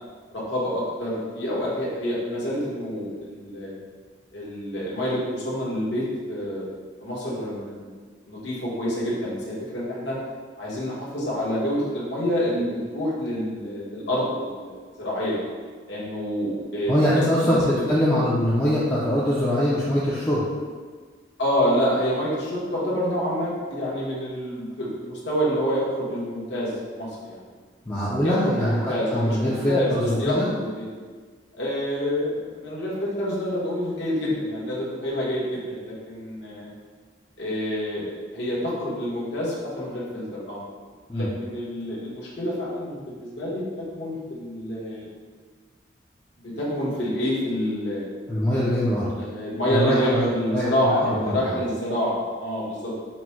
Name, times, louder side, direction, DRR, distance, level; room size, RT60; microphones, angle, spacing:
voice 1, 0.3-3.7 4.3-6.7 7.0-7.9 8.3-10.2 10.6-15.4 15.9-17.6 18.1-18.2 21.4-27.4 28.2-30.9 31.5-36.7 37.4-40.6 41.1-45.1 46.4-48.1 49.2-52.9, equal, 80° left, -7 dB, 1.2 m, -27 dB
voice 2, 16.9-17.6 17.9-20.4 27.9-30.5 41.1-41.3 48.3-49.1 49.7-51.3, equal, 15° left, -9 dB, 0.5 m, -23 dB
4.2 x 2.1 x 4.4 m, 1.5 s
head